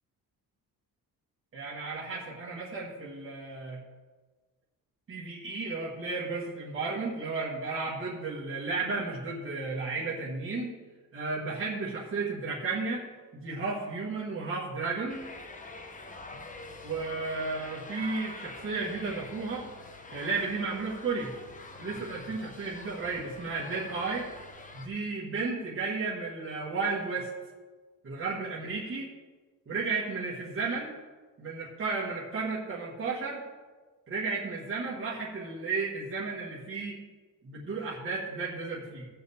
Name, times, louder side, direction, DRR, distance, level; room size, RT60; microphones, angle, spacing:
voice 1, 1.5-3.8 5.1-10.7 11.1-13.0 13.3-15.2 16.8-19.7 20.1-21.3 21.8-24.3 24.7-27.3 28.0-29.1 29.7-30.9 31.4-33.4 34.1-37.0 37.4-39.1, right 4 dB, 35° right, -6 dB, 1.5 m, -33 dB
sound 1, 15.1-24.9, left 3 dB, 20° left, 0.8 m, -45 dB
16.5 x 7.0 x 3.5 m, 1.3 s
wide cardioid pair, 180°, 35 cm